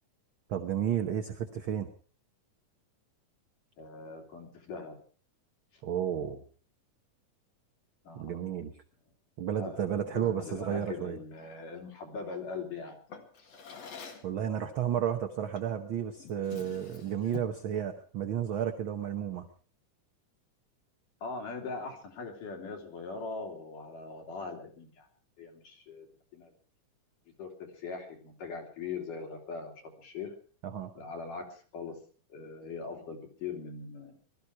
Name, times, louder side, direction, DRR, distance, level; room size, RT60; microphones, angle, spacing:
voice 1, 0.5-1.9 5.8-6.4 8.2-8.7 9.4-11.2 14.2-19.5 30.6-30.9, right 9 dB, 60° right, 6 dB, 1.3 m, -32 dB
voice 2, 3.8-5.0 5.7-5.8 8.0-8.4 9.5-13.0 13.4-13.5 21.2-25.1 25.4-26.1 26.3-26.5 27.4-30.3 31.0-31.9 32.3-34.2, left 4 dB, 85° left, 2 dB, 4.4 m, -41 dB
Drawer open or close, 13.1-14.4 15.6-15.8 16.2-17.7, left 7 dB, 55° left, 3.1 m, -46 dB
20.5 x 13.5 x 4.8 m, 0.42 s
omnidirectional pair, 3.6 m